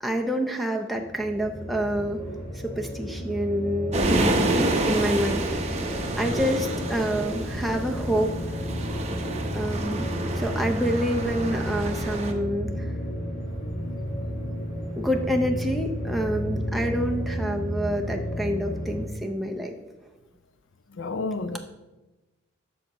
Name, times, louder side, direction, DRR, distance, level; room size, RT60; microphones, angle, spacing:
voice 1, 0.0-2.2 2.5-4.1 4.5-5.8 6.2-8.3 9.5-12.9 15.0-19.7, equal, ahead, 0.5 m, -27 dB
sound 1, 0.9-19.0, equal, 35° left, 2.0 m, -32 dB
sound 2, 3.9-12.3, right 1 dB, 30° right, 0.8 m, -28 dB
voice 2, 20.9-21.6, left 3 dB, 65° left, 0.5 m, -30 dB
12.0 x 6.3 x 3.0 m
head